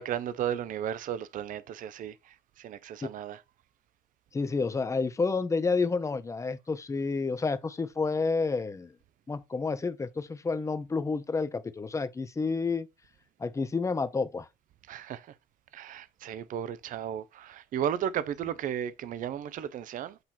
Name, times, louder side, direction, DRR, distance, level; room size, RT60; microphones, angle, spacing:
voice 1, 0.0-3.4 14.9-15.3 15.7-20.2, right 10 dB, 50° right, 0.5 m, -34 dB
voice 2, 4.3-8.9 9.3-12.9 13.4-14.5, left 4 dB, 20° left, 0.6 m, -30 dB
7.8 x 2.9 x 4.2 m
cardioid pair, 110°, 17 cm